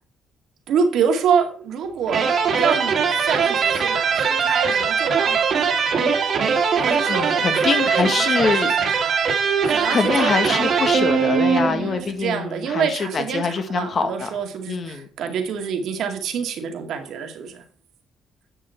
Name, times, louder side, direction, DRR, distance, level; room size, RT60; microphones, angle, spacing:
voice 1, 0.7-2.3 2.5-5.4 6.8-7.5 7.9-9.1 9.7-10.0 10.5-10.7 11.6-17.6, right 6 dB, 75° right, 4 dB, 2.2 m, -26 dB
sound 1, 2.1-12.0, right 6 dB, 60° right, 2.1 m, -21 dB
voice 2, 7.1-8.7 9.9-14.3 14.7-15.1, left 5 dB, 50° left, 7 dB, 1.8 m, -24 dB
10.0 x 6.8 x 4.5 m, 0.40 s
cardioid pair, 90°, 0 cm